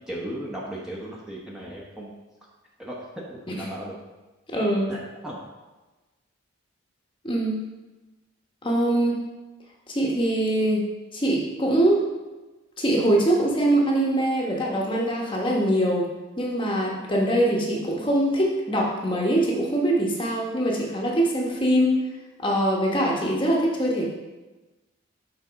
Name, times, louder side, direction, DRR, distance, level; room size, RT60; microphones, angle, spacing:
voice 1, 0.0-2.1 2.8-3.0 3.3-3.9 4.9-5.0 5.2-5.4, right 1 dB, 5° right, -5 dB, 0.9 m, -36 dB
voice 2, 4.5-4.9 7.2-7.6 8.6-9.2 9.9-10.8 11.1-12.0 12.8-16.1 16.4-22.0 22.4-24.0, right 1 dB, 25° left, -2 dB, 1.0 m, -23 dB
7.0 x 4.1 x 5.1 m, 1.2 s
head